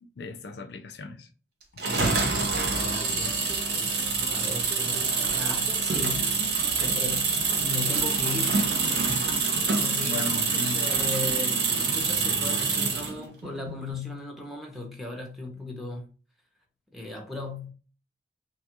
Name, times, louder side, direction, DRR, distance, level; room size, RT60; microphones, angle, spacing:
voice 1, 0.2-1.3 1.7-1.8 10.0-10.9, left 3 dB, 60° left, 0.4 m, -36 dB
sound 1, 1.8-13.2, right 4 dB, 60° right, 0.6 m, -26 dB
voice 2, 1.9-2.3 2.7-3.4 3.9-8.6 9.8-16.1 16.9-17.7, left 2 dB, ahead, 0.6 m, -37 dB
sound 2, 2.5-13.9, equal, 75° right, 1.0 m, -45 dB
2.7 x 2.3 x 2.9 m
head